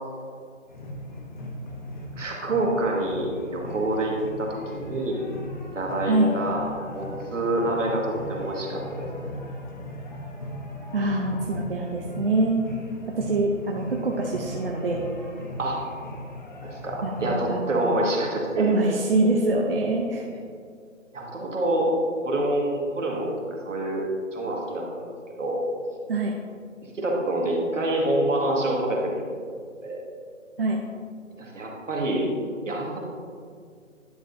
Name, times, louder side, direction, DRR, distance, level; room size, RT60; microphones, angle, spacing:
sound 1, 0.7-17.4, equal, 35° left, 1.0 m, -38 dB
voice 1, 2.1-5.2 5.7-6.6 6.9-9.1 15.6-15.8 16.6-18.8 21.1-21.9 22.2-23.3 23.6-24.1 24.3-25.1 25.4-25.6 26.9-29.2 29.8-30.0 31.4-32.3 32.7-33.0, right 1 dB, 70° right, -1 dB, 1.9 m, -26 dB
voice 2, 10.9-12.6 13.1-15.0 17.0-18.0 18.6-20.4 26.1-26.3 30.6-30.8, right 2 dB, 45° right, 0 dB, 0.7 m, -25 dB
10.5 x 6.3 x 2.7 m, 2.2 s
hypercardioid pair, 160°, 39 cm